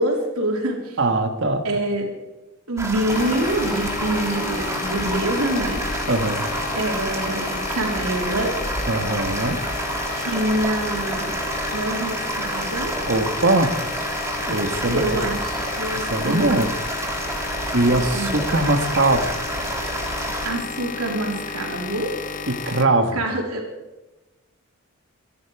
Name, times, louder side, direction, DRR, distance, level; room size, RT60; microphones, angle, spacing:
voice 1, 0.0-1.0 1.6-2.1 2.7-5.8 6.7-8.5 10.1-11.4 11.7-12.9 14.9-16.7 18.1-18.3 20.4-22.1 23.1-23.6, right 1 dB, 85° right, 1 dB, 3.3 m, -26 dB
voice 2, 1.0-1.6 6.1-6.5 8.9-9.6 13.0-13.7 14.5-15.2 15.9-16.7 17.7-19.3 22.5-23.2, right 2 dB, 55° right, 7 dB, 1.5 m, -21 dB
sound 1, 2.8-20.5, right 1 dB, 15° right, 1.8 m, -29 dB
sound 2, 3.1-22.9, left 5 dB, 35° left, 0.7 m, -32 dB
24.0 x 10.5 x 4.8 m, 1.1 s
head